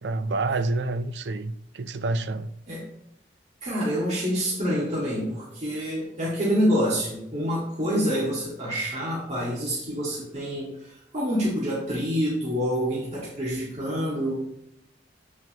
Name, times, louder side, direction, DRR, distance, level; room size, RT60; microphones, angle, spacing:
voice 1, 0.0-2.5, right 2 dB, 75° right, 0.5 m, -28 dB
voice 2, 3.6-14.3, equal, 40° right, 2.0 m, -27 dB
9.0 x 6.2 x 2.9 m
head